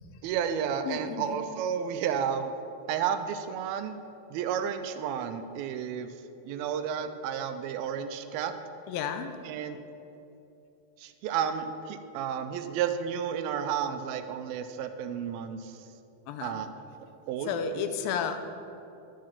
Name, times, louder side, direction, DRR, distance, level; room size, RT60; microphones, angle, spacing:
voice 1, 0.2-2.5 2.9-4.0 4.3-6.1 6.4-8.5 9.4-9.8 11.0-15.7 16.4-16.7 17.3-17.9, right 8 dB, 85° right, 9 dB, 2.4 m, -32 dB
voice 2, 0.8-1.3 8.9-9.3 16.3-16.6 17.5-18.4, left 7 dB, 80° left, 8 dB, 2.4 m, -32 dB
12.0 x 7.5 x 5.8 m, 2.8 s
omnidirectional pair, 4.2 m